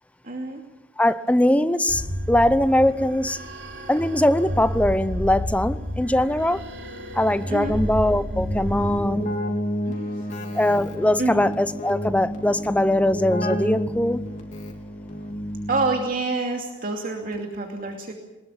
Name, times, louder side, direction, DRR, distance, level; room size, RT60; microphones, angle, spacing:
voice 1, 0.2-0.6 7.5-7.8 8.8-9.4 9.8-10.8 11.2-11.5 15.7-18.1, right 3 dB, 50° right, 2.7 m, -29 dB
voice 2, 1.0-3.4 3.9-6.7 7.1-9.4 10.5-14.2, left 1 dB, 10° left, 0.7 m, -21 dB
sound 1, 1.9-9.0, equal, 90° right, 4.1 m, -31 dB
Keyboard (musical), 8.3-16.2, equal, 40° left, 3.6 m, -30 dB
23.0 x 20.0 x 7.4 m
head